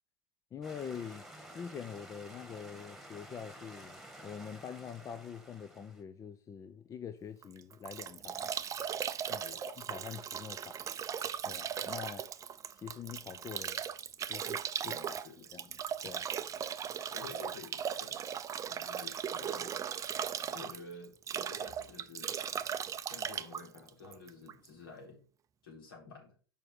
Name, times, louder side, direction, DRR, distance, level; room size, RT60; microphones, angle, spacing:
voice 1, 0.5-1.2 1.5-8.5 9.3-9.4 9.7-10.8 11.4-12.2 12.8-13.8 14.3-15.2 15.5-15.8 16.0-16.2, left 7 dB, 25° left, 0.7 m, -45 dB
sound 1, 0.6-6.0, right 1 dB, ahead, 1.8 m, -52 dB
Bathtub (filling or washing) / Drip / Trickle dribble, 7.4-24.7, right 8 dB, 25° right, 0.6 m, -38 dB
voice 2, 14.8-15.5 17.1-18.3 18.6-19.8 20.5-22.4 23.1-25.2 25.6-26.3, left 4 dB, 70° left, 4.4 m, -50 dB
6.8 x 5.4 x 6.2 m
figure-of-eight pair, 85°, 12 cm